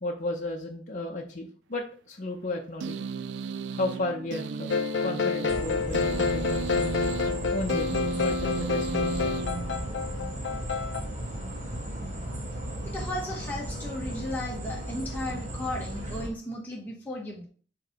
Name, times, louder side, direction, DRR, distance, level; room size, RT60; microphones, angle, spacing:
voice 1, 0.0-3.0 3.7-7.0 7.5-9.3, left 2 dB, 45° left, 0 dB, 0.7 m, -34 dB
sound 1, 2.8-10.2, right 5 dB, 75° right, 0.4 m, -35 dB
sound 2, 4.7-11.0, left 5 dB, 80° left, 0.6 m, -29 dB
sound 3, 5.5-16.3, right 1 dB, 45° right, 1.6 m, -35 dB
voice 2, 12.8-17.4, left 1 dB, 10° left, -4 dB, 1.1 m, -35 dB
4.8 x 3.8 x 5.2 m, 0.42 s
head